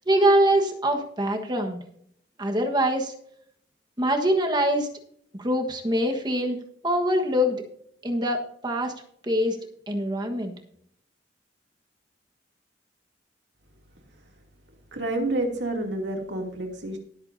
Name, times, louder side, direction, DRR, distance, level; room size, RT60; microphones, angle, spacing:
voice 1, 0.1-1.8 2.4-3.1 4.0-4.9 5.4-7.6 8.0-8.9 9.2-9.6 9.9-10.5, equal, 25° right, 3 dB, 1.4 m, -24 dB
voice 2, 14.9-17.0, right 2 dB, 80° right, 2 dB, 2.7 m, -29 dB
19.5 x 8.2 x 2.7 m, 0.67 s
head